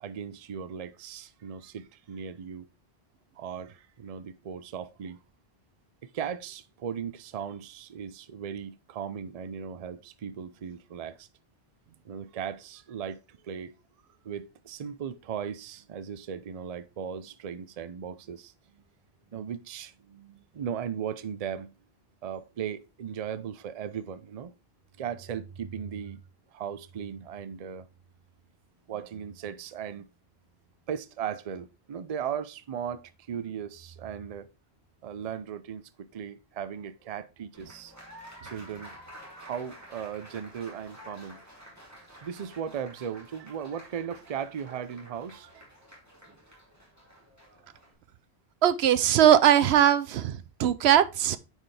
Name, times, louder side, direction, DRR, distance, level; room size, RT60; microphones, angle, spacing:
voice 1, 0.0-2.7 3.4-5.2 6.0-11.3 12.0-13.7 14.2-18.8 19.3-21.8 22.2-24.5 25.0-26.2 26.5-27.9 28.9-30.1 30.9-34.5 35.0-37.9 38.4-39.0 39.4-41.4 42.2-45.6, right 8 dB, 45° right, 0.6 m, -37 dB
Applause, 37.5-47.9, equal, 15° right, 2.4 m, -50 dB
voice 2, 48.6-51.4, right 10 dB, 80° right, 0.8 m, -20 dB
9.2 x 4.6 x 3.3 m
omnidirectional pair, 1.1 m